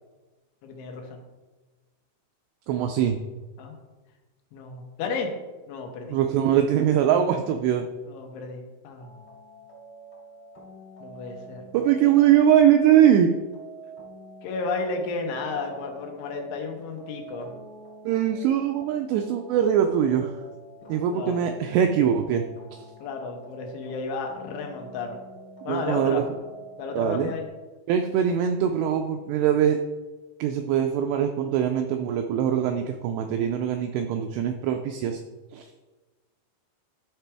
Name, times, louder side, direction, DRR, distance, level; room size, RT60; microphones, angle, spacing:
voice 1, 0.6-1.2 3.6-3.7 4.5-5.3 5.7-6.2 8.1-9.1 11.0-11.6 14.4-17.5 21.1-21.6 23.0-25.2 25.6-26.2 26.8-27.5, left 4 dB, 85° left, 2 dB, 3.4 m, -33 dB
voice 2, 2.7-3.2 6.1-7.9 11.7-13.3 18.1-20.3 20.9-22.4 22.7-22.9 25.7-26.2 27.0-27.3 27.9-29.8 30.4-35.2 35.5-35.7, right 9 dB, 85° right, 5 dB, 2.4 m, -22 dB
sound 1, 9.0-27.5, right 2 dB, 35° left, 0.6 m, -46 dB
12.5 x 4.4 x 3.4 m, 1.2 s
omnidirectional pair, 5.3 m